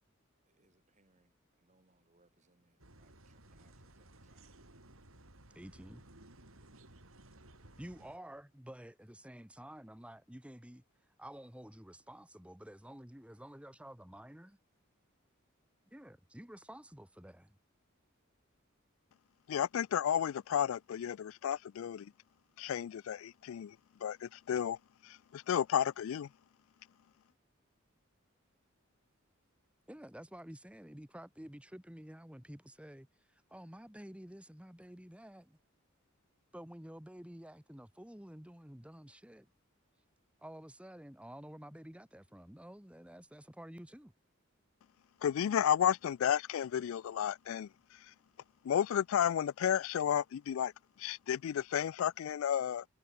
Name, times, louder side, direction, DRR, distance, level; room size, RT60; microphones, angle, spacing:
voice 1, 0.5-4.6 7.6-8.0, right 2 dB, 35° right, 4.2 m, -73 dB
sound 1, 2.8-8.2, right 1 dB, 90° right, 5.6 m, -58 dB
voice 2, 5.5-6.0 7.8-10.8 11.2-14.6 15.9-17.5 29.9-35.6 36.5-39.5 40.4-44.1, equal, 5° right, 1.5 m, -51 dB
voice 3, 19.5-22.1 22.6-23.8 24.0-24.8 25.0-26.3 45.2-47.7 48.6-50.7 51.0-52.8, left 9 dB, 75° left, 0.3 m, -32 dB
head